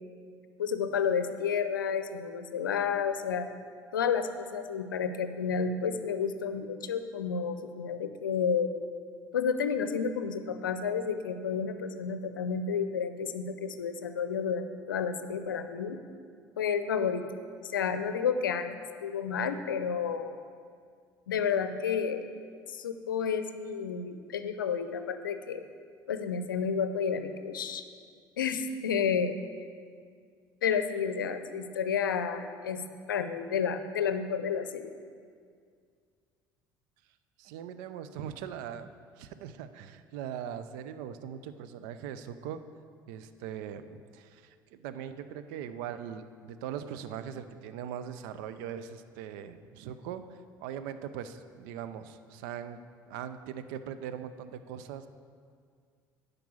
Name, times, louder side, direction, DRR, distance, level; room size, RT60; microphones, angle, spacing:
voice 1, 0.6-3.5 3.9-8.7 9.3-16.0 16.6-17.2 17.6-18.7 19.0-20.4 21.3-22.2 22.7-25.6 26.1-27.8 28.4-29.4 30.6-32.8 33.1-34.9, left 6 dB, 85° left, 10 dB, 0.6 m, -31 dB
voice 2, 37.4-38.9 39.2-42.6 43.1-52.8 53.1-55.1, right 9 dB, 65° right, 11 dB, 0.6 m, -40 dB
10.5 x 5.3 x 7.2 m, 2.1 s
hypercardioid pair, 60°, 11 cm